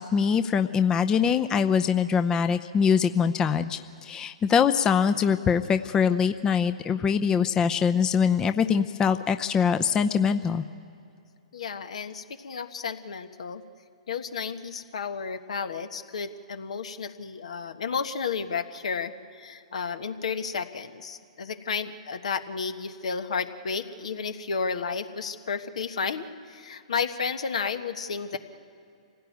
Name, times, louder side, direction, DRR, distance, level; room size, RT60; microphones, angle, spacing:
voice 1, 0.0-10.6, left 6 dB, 20° left, 9 dB, 0.7 m, -23 dB
voice 2, 11.5-13.6 14.1-28.4, left 5 dB, 70° left, 9 dB, 1.4 m, -32 dB
26.5 x 17.0 x 9.4 m, 2.5 s
hypercardioid pair, 120°, 4 cm